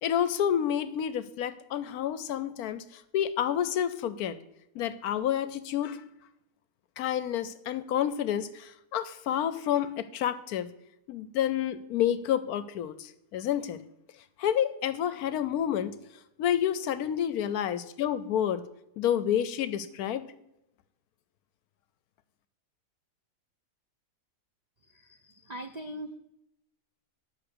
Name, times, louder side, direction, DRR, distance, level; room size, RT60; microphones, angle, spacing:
voice 1, 0.0-2.8 3.1-4.4 4.8-6.0 7.0-10.7 11.1-13.8 14.4-15.9 16.4-18.6 19.0-20.3, left 10 dB, 75° left, 14 dB, 1.0 m, -29 dB
voice 2, 25.2-26.2, right 1 dB, 65° right, 6 dB, 0.4 m, -40 dB
9.9 x 5.7 x 6.8 m, 0.83 s
omnidirectional pair, 1.7 m